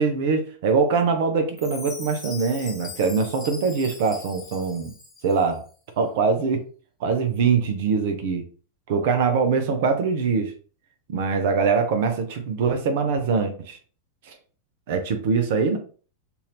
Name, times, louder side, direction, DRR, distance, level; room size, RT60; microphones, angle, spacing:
voice 1, 0.0-4.9 5.2-5.6 6.0-6.6 7.0-8.4 8.9-10.5 11.1-13.8 14.3-14.4 14.9-15.8, right 5 dB, 50° right, 7 dB, 0.6 m, -23 dB
Chime, 1.6-5.6, left 4 dB, 25° left, 1.0 m, -41 dB
2.7 x 2.6 x 3.2 m, 0.39 s
figure-of-eight pair, 90°, 0 cm